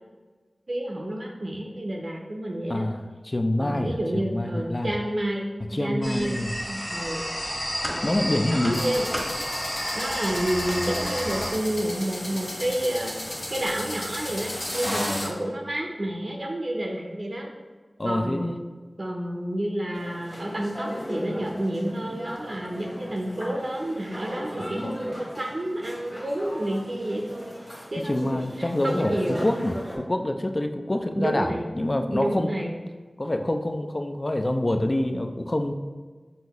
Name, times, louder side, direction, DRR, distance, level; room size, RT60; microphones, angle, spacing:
voice 1, 0.7-2.9 3.6-5.5 5.8-6.4 6.7-7.3 7.8-8.2 8.5-9.1 9.9-13.1 13.5-17.5 18.0-18.6 19.0-27.6 27.9-29.4 31.1-31.6 32.1-32.7, right 1 dB, 55° right, 0 dB, 0.5 m, -30 dB
voice 2, 2.7-4.9 5.7-6.6 8.0-8.8 14.8-15.3 18.0-18.6 28.1-32.5 33.2-35.7, left 1 dB, 40° left, 5 dB, 0.4 m, -26 dB
sound 1, 6.0-11.5, equal, 25° left, 1.5 m, -31 dB
sound 2, 8.7-15.3, left 1 dB, 70° left, 1.0 m, -34 dB
sound 3, 19.9-30.0, equal, 5° left, 1.1 m, -37 dB
5.6 x 2.6 x 2.9 m, 1.4 s
cardioid pair, 40°, 0 cm